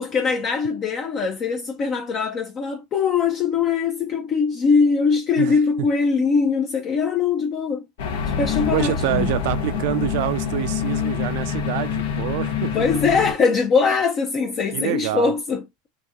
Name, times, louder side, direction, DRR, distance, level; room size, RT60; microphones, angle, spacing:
voice 1, 0.0-7.8 8.4-9.3 12.7-15.6, left 5 dB, 35° left, 0.6 m, -21 dB
sound 1, 8.0-13.3, left 7 dB, 75° left, 0.9 m, -26 dB
voice 2, 8.7-13.0 14.7-15.3, right 13 dB, 65° right, 0.5 m, -26 dB
2.9 x 2.7 x 3.7 m
supercardioid pair, 125°, 0 cm